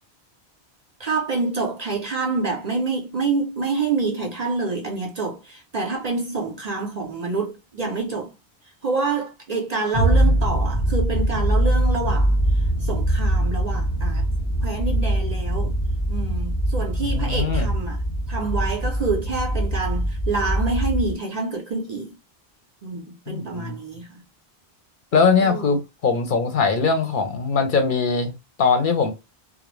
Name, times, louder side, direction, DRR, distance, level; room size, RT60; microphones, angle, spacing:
voice 1, 1.0-8.3 8.8-12.4 12.8-14.3 14.6-15.7 16.1-18.0 18.3-22.1 22.8-24.2 25.4-25.7, right 3 dB, 50° right, 0.6 m, -27 dB
sound 1, 9.9-21.1, right 1 dB, 20° left, 0.5 m, -22 dB
voice 2, 17.0-17.7 23.3-23.7 25.1-28.3 28.6-29.1, left 5 dB, 60° left, 0.7 m, -21 dB
2.3 x 2.0 x 3.0 m
omnidirectional pair, 1.1 m